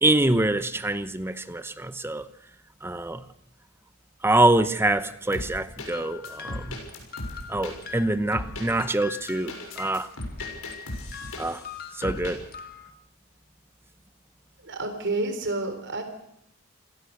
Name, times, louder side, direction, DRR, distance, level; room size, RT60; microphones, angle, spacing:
voice 1, 0.0-2.3 2.8-3.2 4.2-6.8 7.5-10.1 11.4-11.6 12.0-12.4, right 2 dB, 10° right, 13 dB, 0.8 m, -25 dB
sound 1, 5.3-5.9 6.2-7.7 8.3-8.7 9.1-11.7 12.0-12.3, left 1 dB, 90° left, 6.4 m, -36 dB
sound 2, 5.9-12.9, left 7 dB, 45° left, 2.0 m, -42 dB
voice 2, 14.6-16.0, right 2 dB, 55° right, 7 dB, 4.0 m, -29 dB
28.0 x 17.5 x 6.7 m, 0.76 s
head